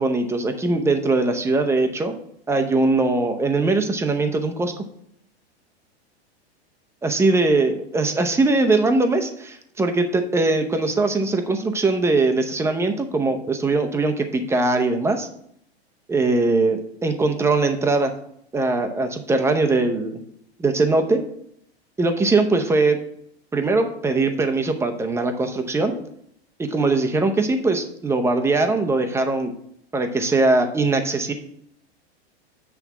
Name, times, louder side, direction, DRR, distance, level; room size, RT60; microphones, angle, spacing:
voice 1, 0.0-2.1 2.5-4.7 7.0-15.3 16.1-18.1 18.5-20.2 20.6-21.3 22.0-23.0 23.5-26.0 26.6-29.5 29.9-31.3, right 3 dB, 10° right, 5 dB, 0.7 m, -21 dB
8.1 x 3.5 x 5.9 m, 0.70 s
hypercardioid pair, 125°, 32 cm